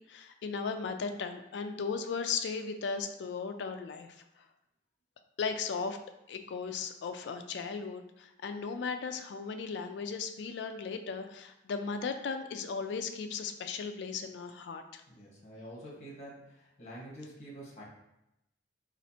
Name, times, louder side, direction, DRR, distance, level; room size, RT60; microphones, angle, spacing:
voice 1, 0.1-4.2 5.4-6.0 6.3-15.0, left 5 dB, 70° left, 7 dB, 0.3 m, -36 dB
voice 2, 15.1-17.8, right 1 dB, 35° left, -5 dB, 1.2 m, -47 dB
4.2 x 2.4 x 2.7 m, 0.86 s
head